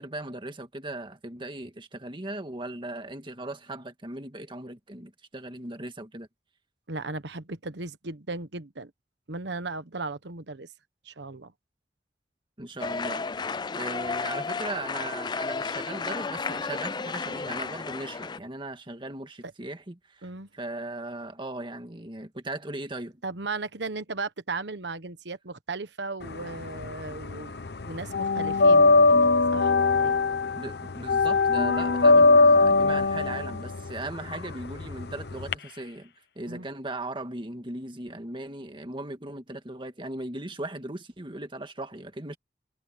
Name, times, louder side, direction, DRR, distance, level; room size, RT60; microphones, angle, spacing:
voice 1, 0.0-6.3 12.6-13.3 13.7-23.2 30.6-42.4, right 2 dB, 30° right, 1.9 m, -38 dB
voice 2, 6.9-8.9 9.3-10.7 11.0-11.5 19.4-19.5 20.2-20.5 23.2-27.5 27.8-30.2 36.5-36.7, right 3 dB, 80° right, 1.3 m, -36 dB
sound 1, 12.8-18.4, left 4 dB, 25° left, 0.4 m, -32 dB
sound 2, 26.3-27.4 27.6-35.5, left 3 dB, 65° left, 0.8 m, -20 dB
head